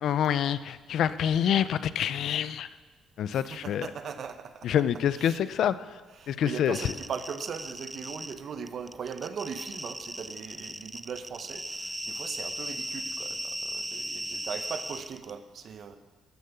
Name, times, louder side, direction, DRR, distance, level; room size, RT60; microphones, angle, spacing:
voice 1, 0.0-2.7 3.2-3.9 4.6-6.0 6.3-6.9, left 9 dB, 75° left, 15 dB, 0.6 m, -27 dB
voice 2, 3.3-4.7 5.1-5.4 6.2-16.0, right 6 dB, 60° right, 9 dB, 1.1 m, -39 dB
sound 1, 6.7-8.4 8.7-15.3, right 1 dB, 5° right, 0.6 m, -37 dB
13.0 x 9.6 x 6.9 m, 1.3 s
cardioid pair, 90°, 0 cm